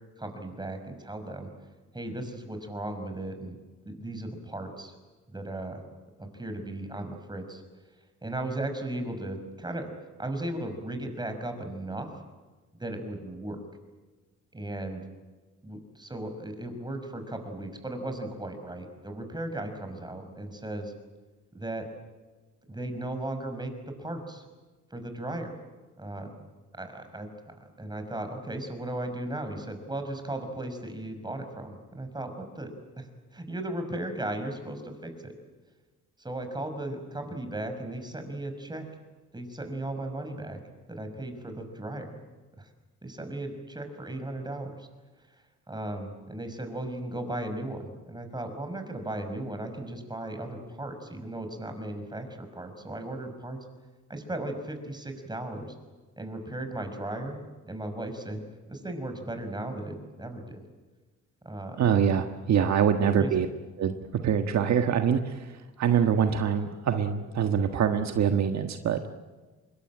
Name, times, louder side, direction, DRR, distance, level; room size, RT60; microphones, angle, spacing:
voice 1, 0.2-1.5 1.9-3.6 3.9-4.9 5.3-5.8 6.2-7.6 8.2-9.9 10.2-12.1 12.7-13.6 14.5-15.0 15.6-20.9 21.5-21.9 22.7-24.4 24.9-25.5 26.0-26.4 26.7-32.7 33.0-33.1 33.3-35.3 36.2-38.9 39.3-40.6 40.9-42.2 42.6-42.7 43.0-44.9 45.7-53.6 54.1-55.7 56.2-57.4 57.7-58.4 58.7-60.6 61.4-61.8 63.2-63.3, right 1 dB, 15° right, 6 dB, 5.7 m, -36 dB
voice 2, 61.8-63.5 63.8-69.0, right 8 dB, 65° right, 6 dB, 1.5 m, -25 dB
25.5 x 22.0 x 9.0 m, 1.3 s
cardioid pair, 90°, 30 cm